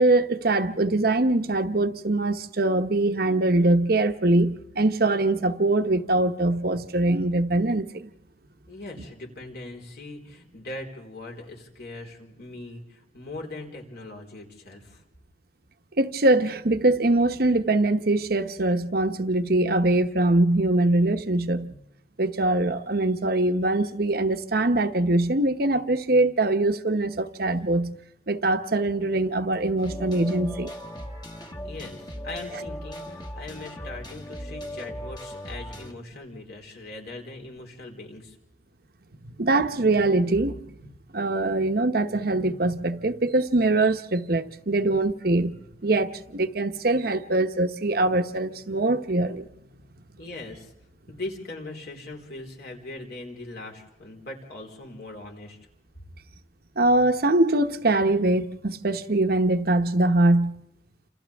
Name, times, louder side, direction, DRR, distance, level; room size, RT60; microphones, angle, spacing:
voice 1, 0.0-8.1 16.0-21.8 22.2-27.9 28.3-30.7 39.2-45.5 45.8-49.5 56.8-60.6, right 2 dB, 55° right, 1.0 m, -23 dB
voice 2, 8.7-15.0 31.6-38.4 50.2-50.7 51.1-55.6, left 2 dB, 60° left, 4.3 m, -40 dB
sound 1, 29.8-35.9, equal, 25° left, 1.6 m, -38 dB
29.5 x 27.0 x 3.5 m
head